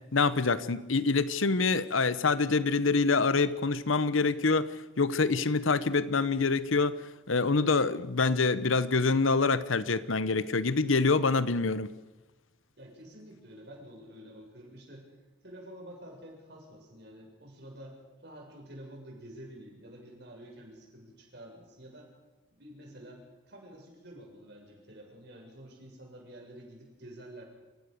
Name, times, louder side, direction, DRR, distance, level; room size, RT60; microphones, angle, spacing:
voice 1, 0.1-7.0 7.3-11.9, left 4 dB, 85° left, 1.0 m, -26 dB
voice 2, 12.8-15.0 15.4-22.1 22.5-27.5, right 1 dB, 55° right, 7.2 m, -49 dB
28.0 x 15.5 x 6.7 m
head